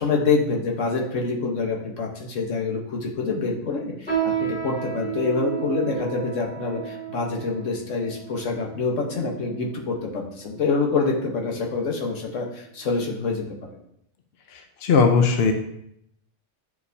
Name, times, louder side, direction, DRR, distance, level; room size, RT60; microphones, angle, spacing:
voice 1, 0.0-13.4, left 4 dB, 80° left, 0 dB, 1.4 m, -26 dB
sound 1, 4.1-9.7 10.4-10.5 11.3-11.6 12.0-12.1 12.8-12.9, right 9 dB, 5° left, 2.3 m, -32 dB
voice 2, 14.5-15.5, left 5 dB, 60° left, 4 dB, 0.8 m, -19 dB
8.4 x 4.7 x 2.7 m, 0.76 s
omnidirectional pair, 1.3 m